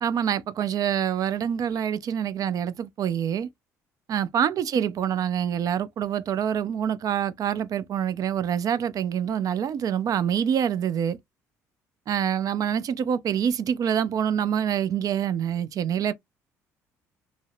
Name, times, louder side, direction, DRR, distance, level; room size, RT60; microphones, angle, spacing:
voice 1, 0.0-3.5 4.1-11.2 12.1-16.1, right 9 dB, 50° right, 0.4 m, -26 dB
2.6 x 2.0 x 2.4 m
hypercardioid pair, 60°, 8 cm